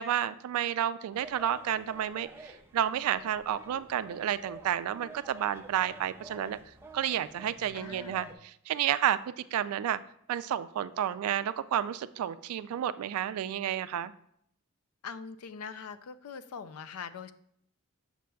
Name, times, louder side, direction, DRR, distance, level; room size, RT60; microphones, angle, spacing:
voice 1, 0.0-6.6 6.9-10.0 10.3-14.1, right 10 dB, 85° right, 16 dB, 0.3 m, -31 dB
sound 1, 1.1-8.3, right 2 dB, 10° right, 0.4 m, -50 dB
voice 2, 7.7-8.3 15.0-17.3, left 6 dB, 85° left, 13 dB, 0.4 m, -42 dB
6.6 x 6.3 x 2.3 m, 0.69 s
head